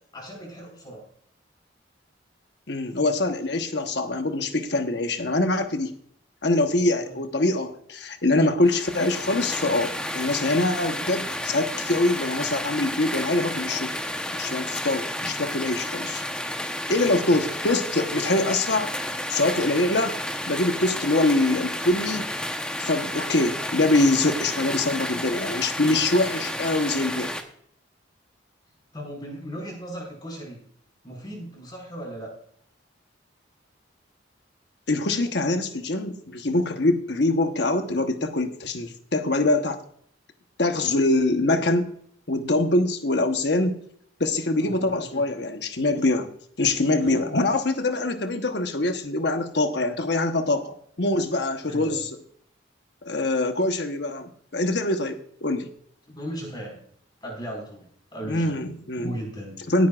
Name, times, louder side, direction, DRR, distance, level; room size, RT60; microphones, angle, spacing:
voice 1, 0.1-1.0 7.0-7.2 17.2-17.4 28.9-30.6 31.0-32.3 44.6-45.2 51.6-52.0 56.1-56.8 57.2-58.6 59.0-59.6, right 1 dB, 25° left, 0 dB, 5.1 m, -37 dB
voice 2, 2.7-5.9 6.4-13.9 14.3-16.2 16.9-18.9 19.3-20.1 20.5-22.3 22.8-27.3 34.9-39.8 40.6-41.8 42.3-43.8 44.2-46.3 46.6-52.2 53.0-55.7 58.3-59.1 59.7-59.9, left 2 dB, 60° left, 6 dB, 1.1 m, -24 dB
sound 1, 8.6-27.4, left 1 dB, 5° left, 0.9 m, -31 dB
17.5 x 9.4 x 2.5 m, 0.63 s
head